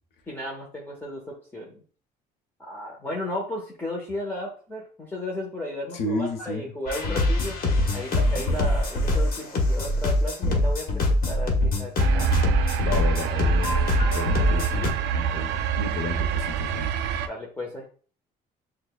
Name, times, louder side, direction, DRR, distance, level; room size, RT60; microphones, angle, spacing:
voice 1, 0.3-1.8 2.6-12.4 17.3-17.9, left 1 dB, 10° left, -3 dB, 0.9 m, -34 dB
voice 2, 5.9-6.7 12.8-16.9, left 2 dB, 80° left, 5 dB, 0.9 m, -32 dB
sound 1, 6.9-14.9, left 1 dB, 60° left, 1.2 m, -23 dB
sound 2, 12.0-17.3, right 8 dB, 85° right, 0.4 m, -27 dB
6.4 x 2.3 x 2.2 m, 0.42 s
cardioid pair, 110°, 17 cm